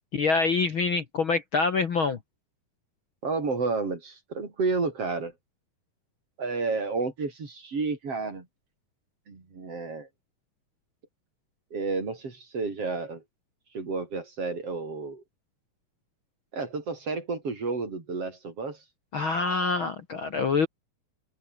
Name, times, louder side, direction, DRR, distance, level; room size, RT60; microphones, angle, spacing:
voice 1, 0.1-2.2 19.1-20.7, left 4 dB, 45° left, 2.1 m, -25 dB
voice 2, 3.2-5.3 6.4-8.5 9.3-10.1 11.7-13.2 13.7-15.2 16.5-18.8, right 4 dB, 45° right, 5.5 m, -31 dB
open air
omnidirectional pair, 3.8 m